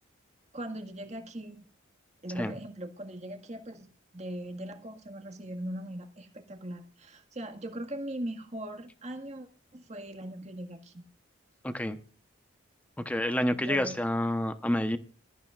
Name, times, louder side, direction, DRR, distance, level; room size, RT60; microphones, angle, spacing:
voice 1, 0.5-1.6 2.2-3.9 4.1-9.5 9.7-11.0 13.5-14.0, right 1 dB, 35° right, 4 dB, 1.8 m, -40 dB
voice 2, 11.6-12.0 13.0-15.0, left 1 dB, 5° left, 9 dB, 0.9 m, -28 dB
24.5 x 14.0 x 2.5 m, 0.40 s
head